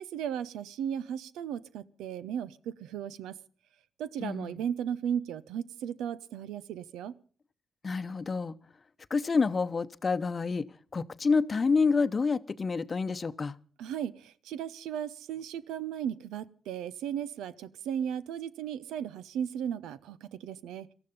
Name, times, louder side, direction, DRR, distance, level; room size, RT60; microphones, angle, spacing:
voice 1, 0.0-3.3 4.0-7.2 13.8-20.9, right 9 dB, 90° right, 0.7 m, -36 dB
voice 2, 4.2-4.6 7.8-8.6 9.1-10.7 10.9-13.6, left 4 dB, 40° left, 0.8 m, -28 dB
18.5 x 13.5 x 5.3 m
supercardioid pair, 60°, 0 cm